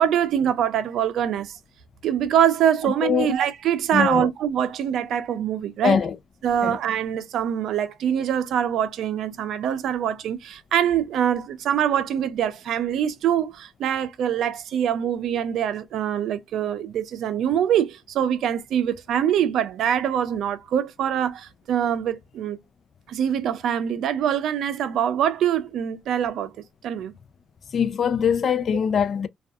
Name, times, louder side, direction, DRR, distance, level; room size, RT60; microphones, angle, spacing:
voice 1, 0.0-1.6 2.0-6.0 6.4-22.6 23.1-26.5 26.8-27.1, right 9 dB, 75° right, 0.5 m, -24 dB
voice 2, 2.8-3.3 3.9-4.3 5.8-6.2 6.6-6.8 27.7-29.3, left 7 dB, 55° left, 0.4 m, -22 dB
2.6 x 2.3 x 2.3 m
cardioid pair, 90°, 0 cm